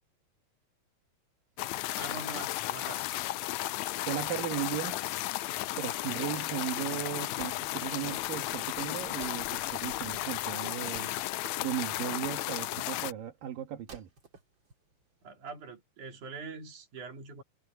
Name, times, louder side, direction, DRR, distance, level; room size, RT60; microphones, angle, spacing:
sound 1, 1.6-13.1, left 16 dB, 85° left, 1.6 m, -34 dB
voice 1, 2.0-3.1 15.2-17.4, right 4 dB, 65° right, 4.5 m, -43 dB
voice 2, 4.1-5.0 5.8-11.1 11.6-14.1, right 11 dB, 80° right, 3.3 m, -36 dB
sound 2, 5.0-10.7, left 6 dB, 40° left, 1.2 m, -56 dB
Wood, 7.3-15.3, right 4 dB, 35° right, 3.8 m, -55 dB
omnidirectional pair, 3.9 m